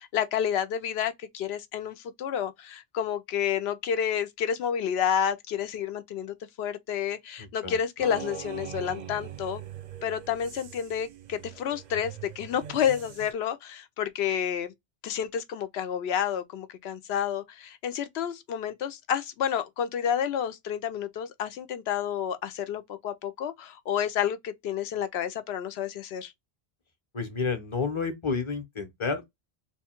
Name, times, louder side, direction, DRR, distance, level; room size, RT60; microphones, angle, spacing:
voice 1, 0.0-9.6 10.0-14.7 15.0-26.3, left 8 dB, 80° left, 0.8 m, -30 dB
sound 1, 8.0-13.3, right 10 dB, 55° right, 0.5 m, -42 dB
voice 2, 27.1-29.3, left 4 dB, 30° left, 0.8 m, -30 dB
3.1 x 2.3 x 4.3 m
omnidirectional pair, 1.1 m